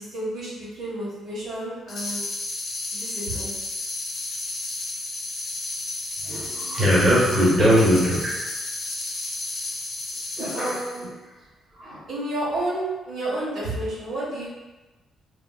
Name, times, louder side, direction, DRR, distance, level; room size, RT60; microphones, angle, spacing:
voice 1, 0.0-2.2 2.9-3.5 10.4-11.1 12.1-14.6, right 1 dB, 75° right, -8 dB, 1.5 m, -30 dB
sound 1, 1.9-11.0, left 2 dB, 60° left, 0.7 m, -32 dB
voice 2, 6.2-8.5 10.4-11.1 11.7-12.0, equal, 25° right, -8 dB, 1.0 m, -21 dB
2.9 x 2.8 x 2.3 m, 1.1 s
cardioid pair, 90°, 0 cm